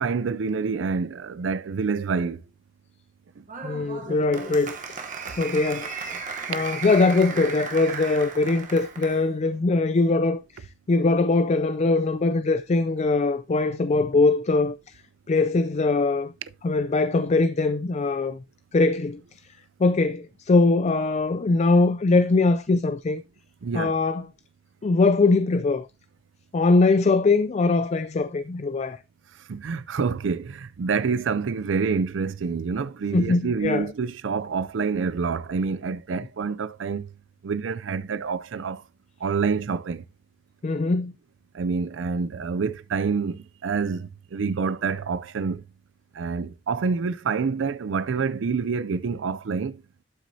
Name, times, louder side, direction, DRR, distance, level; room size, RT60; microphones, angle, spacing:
voice 1, 0.0-2.4 3.4-3.5 23.6-24.0 29.3-37.1 37.4-38.8 39.2-40.0 41.5-45.6 46.1-49.8, right 5 dB, 70° right, 0.4 m, -27 dB
Applause, 3.5-9.3, right 5 dB, 40° right, 1.0 m, -35 dB
voice 2, 3.6-5.0 5.4-6.2 6.5-14.9 15.3-16.3 16.6-18.4 18.7-19.2 19.8-23.2 23.7-24.2 24.8-25.9 26.5-29.0 33.1-33.8 40.6-41.1, left 3 dB, 35° left, 0.4 m, -22 dB
11.5 x 6.1 x 2.7 m
head